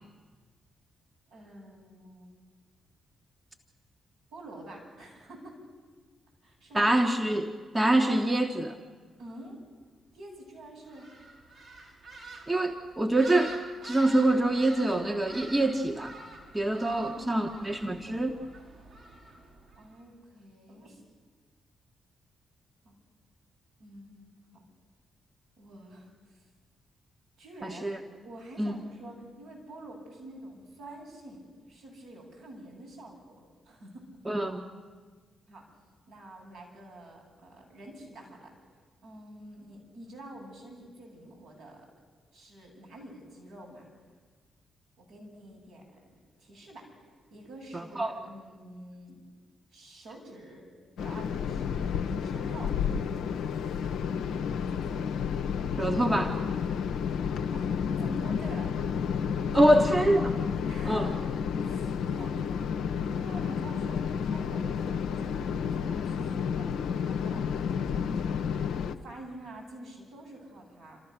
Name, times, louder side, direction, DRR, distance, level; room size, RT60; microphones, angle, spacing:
voice 1, 1.3-2.3 4.3-5.6 6.4-6.9 9.2-9.6 10.1-11.1 17.0-17.6 19.8-21.0 22.8-23.0 23.8-24.7 25.6-26.5 27.4-27.9 28.2-34.0 35.5-35.6 36.1-38.5 39.0-41.9 42.3-43.9 45.0-45.8 46.4-46.9 47.3-49.2 49.7-50.6 51.0-52.8 54.6-55.0 57.5-58.7 59.5-59.9 60.7-61.2 61.6-62.8 63.1-66.7 67.0-67.4 67.9-68.4 69.0-71.0, right 1 dB, 75° right, -5 dB, 7.5 m, -47 dB
voice 2, 6.7-8.8 12.5-13.6 13.8-16.1 16.5-18.4 27.8-28.0 28.6-28.8 34.3-34.6 47.7-48.2 55.8-56.4 59.5-60.4 60.9-61.1, right 1 dB, 20° right, 4 dB, 1.6 m, -25 dB
sound 1, 10.9-20.0, right 2 dB, 55° right, 3.9 m, -47 dB
sound 2, 51.0-68.9, left 7 dB, 65° left, 0.8 m, -31 dB
29.0 x 14.0 x 6.8 m, 1.5 s
hypercardioid pair, 40°, 0 cm